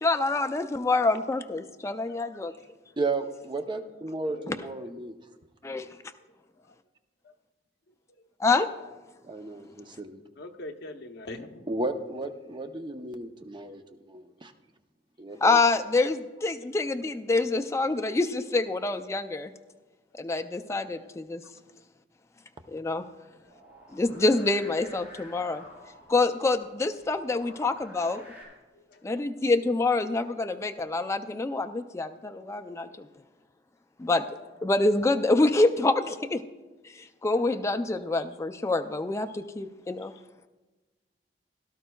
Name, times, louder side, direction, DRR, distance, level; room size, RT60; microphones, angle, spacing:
voice 1, 0.0-2.5 4.5-4.6 5.6-5.9 8.4-8.7 15.4-19.5 20.1-21.4 22.7-23.0 23.9-25.6 26.1-28.2 29.0-33.1 34.0-34.3 34.6-36.4 36.9-40.1, left 3 dB, 15° left, 7 dB, 0.4 m, -26 dB
voice 2, 3.0-5.1 9.2-10.2 11.7-14.5 15.2-15.6, right 2 dB, 25° right, 7 dB, 0.6 m, -34 dB
voice 3, 4.3-4.9 10.4-11.7 28.9-29.0, left 2 dB, 65° left, 4 dB, 0.8 m, -42 dB
sound 1, 23.4-28.4, equal, 10° right, 3.7 m, -51 dB
17.0 x 12.0 x 2.3 m, 1.2 s
head